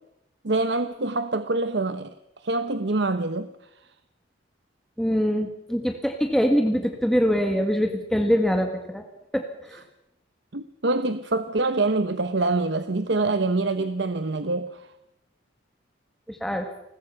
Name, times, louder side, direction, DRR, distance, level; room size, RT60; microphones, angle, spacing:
voice 1, 0.4-2.1 2.4-3.5 10.5-14.9, right 2 dB, 65° right, 10 dB, 1.0 m, -25 dB
voice 2, 5.0-9.0 9.3-9.8 16.3-16.7, equal, ahead, 3 dB, 1.8 m, -24 dB
30.0 x 21.0 x 5.8 m, 0.85 s
head